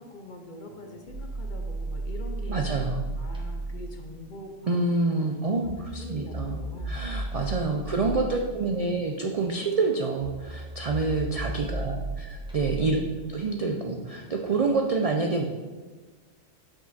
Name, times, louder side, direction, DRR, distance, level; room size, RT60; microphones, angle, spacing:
voice 1, 0.0-2.7 3.2-5.1 5.5-5.7 6.0-7.0 7.7-8.4 11.6-12.2 12.8-13.1, left 2 dB, 50° left, 4 dB, 0.7 m, -43 dB
sound 1, 0.7-3.9 5.6-14.7, right 2 dB, 5° right, 1.0 m, -35 dB
voice 2, 2.5-3.0 4.7-6.6 6.9-13.0 13.3-15.4, right 3 dB, 60° right, 2 dB, 0.4 m, -27 dB
6.2 x 5.0 x 4.1 m, 1.4 s
omnidirectional pair, 1.2 m